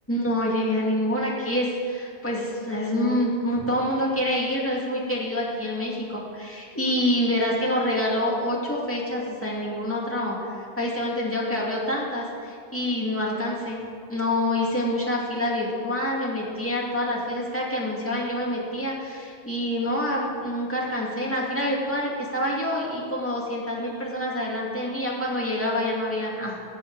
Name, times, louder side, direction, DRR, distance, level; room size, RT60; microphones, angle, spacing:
voice 1, 0.1-13.8 14.1-26.6, left 1 dB, 10° left, -4 dB, 2.2 m, -27 dB
19.0 x 7.6 x 4.7 m, 2.4 s
omnidirectional pair, 1.2 m